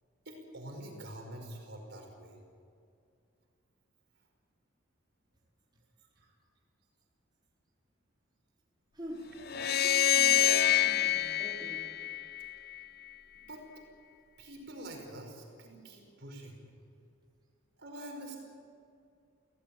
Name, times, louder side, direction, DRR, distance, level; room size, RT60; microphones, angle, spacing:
voice 1, 0.3-2.4 6.2-6.3 13.3-13.6 14.4-16.6 17.8-18.4, right 1 dB, 60° right, 1 dB, 5.3 m, -46 dB
voice 2, 8.9-11.9, equal, 20° right, -4 dB, 4.7 m, -45 dB
sound 1, 9.5-12.8, left 11 dB, 55° left, 0.6 m, -27 dB
27.0 x 17.0 x 8.6 m, 2.5 s
head